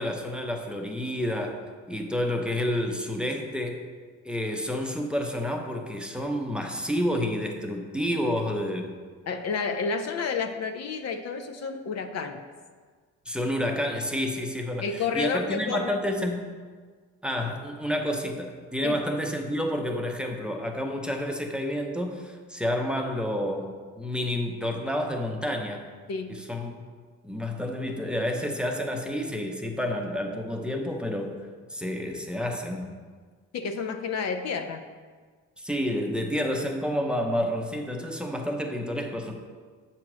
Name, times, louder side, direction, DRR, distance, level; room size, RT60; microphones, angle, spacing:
voice 1, 0.0-1.6 1.9-3.8 4.2-8.9 13.3-16.4 17.2-23.7 24.0-25.8 26.3-26.7 27.2-31.3 31.7-32.9 35.6-39.4, left 1 dB, 5° right, 2 dB, 0.7 m, -29 dB
voice 2, 9.3-12.4 14.8-15.9 18.8-19.0 26.1-26.3 33.5-34.8, left 5 dB, 60° left, 7 dB, 0.6 m, -30 dB
7.5 x 2.9 x 6.0 m, 1.6 s
cardioid pair, 90°, 30 cm